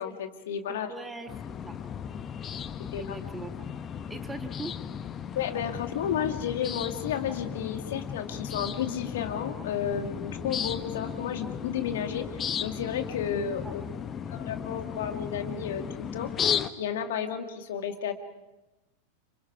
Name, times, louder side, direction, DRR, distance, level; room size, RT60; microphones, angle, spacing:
voice 1, 0.0-0.9 2.9-3.0 5.3-13.8 14.3-18.1, left 8 dB, 55° left, 6 dB, 2.2 m, -32 dB
voice 2, 0.7-1.8 3.0-3.6 4.1-4.7 13.6-13.7, right 2 dB, 10° right, 7 dB, 1.8 m, -41 dB
sound 1, 1.3-16.7, left 8 dB, 25° left, 1.1 m, -35 dB
29.5 x 27.0 x 4.8 m, 1.0 s
figure-of-eight pair, 90°, 0 cm